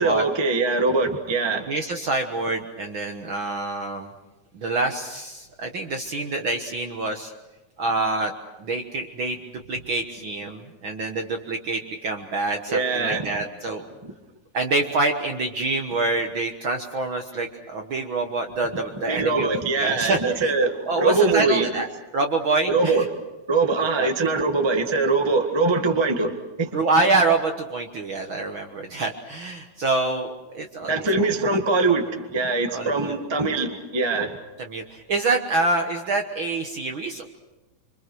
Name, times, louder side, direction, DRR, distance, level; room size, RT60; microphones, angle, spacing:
voice 1, 0.0-1.7 12.7-13.3 14.0-14.1 19.1-21.7 22.7-23.1 23.5-26.7 30.9-34.4, right 3 dB, 15° right, 4 dB, 0.9 m, -22 dB
voice 2, 1.7-4.1 4.5-7.3 7.8-8.3 8.6-9.4 9.7-13.9 14.5-20.5 20.9-21.9 22.1-23.1 23.8-24.1 26.7-30.9 31.2-31.3 32.7-33.1 34.6-37.2, right 2 dB, 55° right, 4 dB, 1.5 m, -26 dB
26.0 x 25.5 x 6.2 m, 1.1 s
omnidirectional pair, 3.7 m